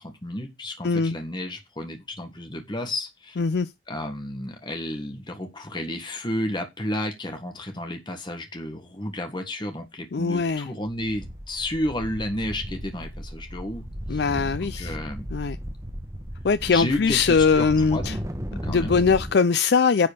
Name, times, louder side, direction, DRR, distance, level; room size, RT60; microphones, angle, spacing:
voice 1, 0.0-3.4 3.9-15.3 16.7-18.2 18.5-19.0, left 1 dB, 25° left, 1.6 m, -32 dB
voice 2, 0.8-1.1 3.4-3.7 10.1-10.7 14.1-14.9 15.3-15.6 16.4-18.1 18.7-20.1, left 5 dB, 65° left, 0.5 m, -21 dB
sound 1, 10.4-10.6 10.9-19.3, equal, 20° right, 1.2 m, -35 dB
10.5 x 4.3 x 6.8 m
head